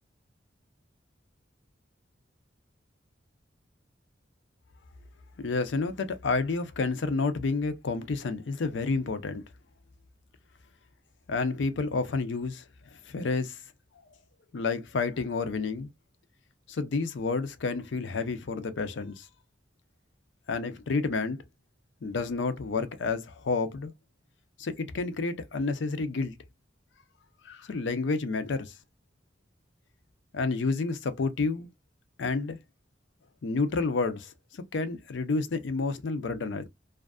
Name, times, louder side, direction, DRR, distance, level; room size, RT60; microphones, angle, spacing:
voice 1, 5.4-9.4 11.3-12.6 13.1-13.6 14.5-15.9 16.7-19.3 20.5-21.4 22.0-23.9 24.6-26.3 27.4-28.7 30.3-31.7 32.2-32.6 33.4-36.7, left 4 dB, 70° left, 0.5 m, -30 dB
2.5 x 2.3 x 2.3 m
head